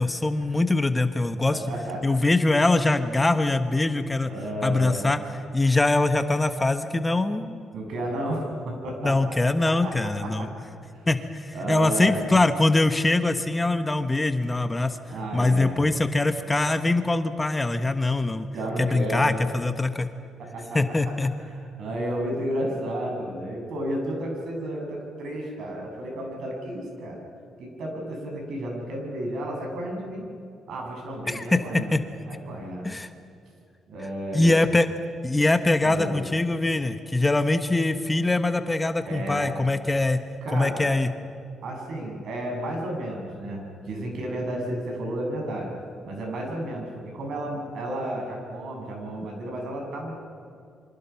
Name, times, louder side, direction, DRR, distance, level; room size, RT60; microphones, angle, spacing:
voice 1, 0.0-1.6 2.0-4.3 4.6-5.2 5.5-7.7 9.0-10.5 11.1-15.0 15.3-18.5 18.8-20.1 20.7-21.3 31.3-31.6 31.9-32.0 32.8-33.1 34.3-34.9 35.2-40.2 40.5-41.1, left 2 dB, 15° left, 9 dB, 1.3 m, -23 dB
voice 2, 1.5-2.2 4.3-5.0 7.7-9.3 9.6-10.5 10.9-11.1 11.5-12.2 15.1-15.8 18.5-19.4 20.4-21.0 21.5-27.2 27.6-30.3 30.7-32.0 32.3-32.9 33.9-34.5 35.8-36.2 39.1-39.5 40.4-40.9 41.6-45.7 46.0-50.2, right 1 dB, 70° right, 0 dB, 7.3 m, -32 dB
27.5 x 25.5 x 5.9 m, 2.5 s
cardioid pair, 90°, 0 cm